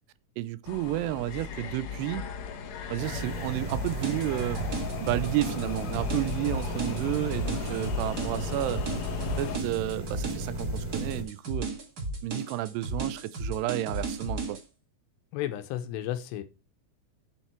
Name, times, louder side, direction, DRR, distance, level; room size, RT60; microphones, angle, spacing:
voice 1, 0.4-2.3 2.9-4.6 5.0-8.9 9.4-11.7 12.2-14.6, right 15 dB, 85° right, 2.7 m, -31 dB
sound 1, 0.6-9.6, left 7 dB, 60° left, 1.9 m, -37 dB
sound 2, 3.0-11.2, right 2 dB, 15° right, 3.9 m, -36 dB
sound 3, 3.7-14.6, right 3 dB, 65° right, 0.9 m, -34 dB
voice 2, 15.3-16.4, left 12 dB, 85° left, 3.0 m, -33 dB
9.1 x 7.4 x 4.4 m
omnidirectional pair, 4.9 m